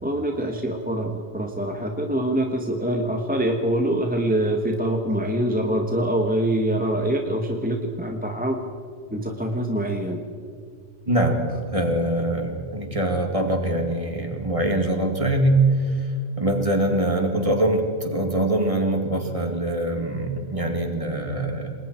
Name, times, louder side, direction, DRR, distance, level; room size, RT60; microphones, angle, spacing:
voice 1, 0.0-8.6 9.1-10.2, right 1 dB, 5° right, 3 dB, 1.3 m, -24 dB
voice 2, 11.1-11.4 11.7-16.1 16.4-21.7, right 1 dB, 25° right, 3 dB, 2.7 m, -23 dB
28.0 x 20.5 x 4.5 m, 2.3 s
omnidirectional pair, 1.3 m